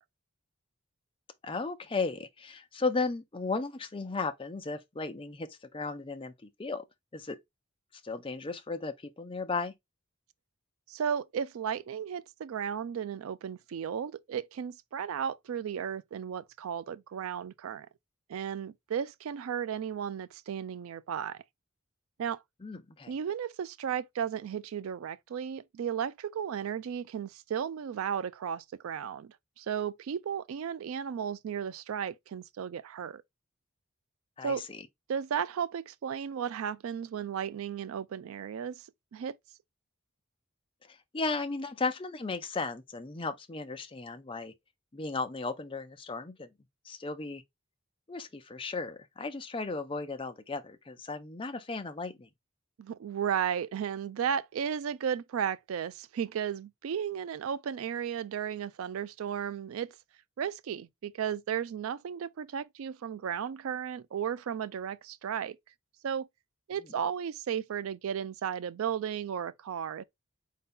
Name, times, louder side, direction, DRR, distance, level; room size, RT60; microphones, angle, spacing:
voice 1, 1.4-6.3 6.6-6.8 7.1-7.4 8.0-9.7 22.6-23.1 34.4-34.8 40.9-44.5 44.9-46.5 46.8-47.4 48.1-52.3, left 3 dB, 25° left, 0.5 m, -35 dB
voice 2, 10.9-17.9 18.3-21.4 22.2-22.4 23.1-33.2 34.4-34.7 35.1-38.9 39.1-39.4 52.8-60.0 60.4-65.6 66.0-66.3 66.7-70.0, right 8 dB, 70° right, 0.3 m, -34 dB
4.4 x 2.7 x 3.6 m
head